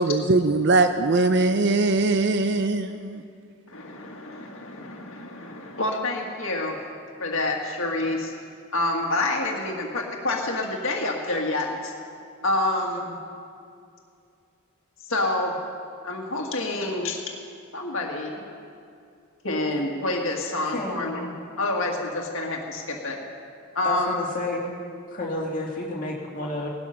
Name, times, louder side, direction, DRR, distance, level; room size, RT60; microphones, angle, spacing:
voice 1, 0.0-3.2, right 3 dB, 50° right, 8 dB, 0.5 m, -21 dB
voice 2, 3.7-6.8 7.2-8.3 8.7-11.9 12.4-13.2 15.1-15.5 16.0-17.2 17.7-18.4 19.4-21.3 21.6-23.2 23.8-24.2, left 2 dB, 65° left, 0 dB, 1.8 m, -27 dB
voice 3, 20.7-21.1 23.8-24.7 25.1-26.7, left 1 dB, 40° left, -2 dB, 2.5 m, -30 dB
18.5 x 13.0 x 5.7 m, 2.4 s
head